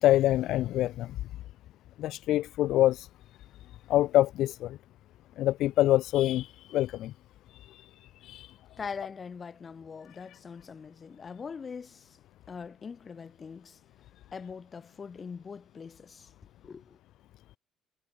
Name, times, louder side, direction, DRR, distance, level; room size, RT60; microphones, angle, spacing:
voice 1, 0.0-1.2 2.0-3.1 3.9-4.8 5.4-7.1 7.7-7.8 8.2-8.5, left 14 dB, 70° left, 1.3 m, -25 dB
voice 2, 8.7-12.2 12.5-13.8 14.3-17.0, left 5 dB, 40° left, 4.8 m, -42 dB
supercardioid pair, 70°, 0 cm